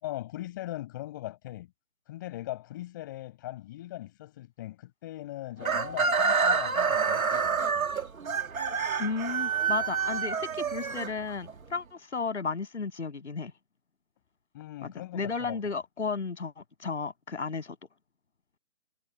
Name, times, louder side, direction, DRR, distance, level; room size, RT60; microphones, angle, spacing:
voice 1, 0.0-1.7 2.1-7.9 14.5-15.8, left 15 dB, 15° left, 6.5 m, -40 dB
Chicken rooster, 5.6-11.6, right 5 dB, 85° right, 2.0 m, -28 dB
voice 2, 9.0-13.5 14.8-17.8, left 4 dB, 55° left, 6.9 m, -34 dB
hypercardioid pair, 180°, 40 cm